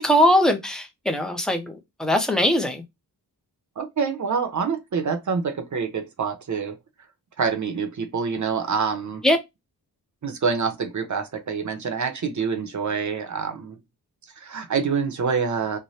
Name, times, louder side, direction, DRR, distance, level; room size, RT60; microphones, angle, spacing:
voice 1, 0.0-2.8 9.2-9.4, equal, ahead, 0.6 m, -21 dB
voice 2, 3.8-6.8 7.4-9.2 10.2-13.8 14.4-15.8, right 5 dB, 50° right, 0.8 m, -26 dB
3.1 x 2.2 x 4.1 m
wide cardioid pair, 145°, 38 cm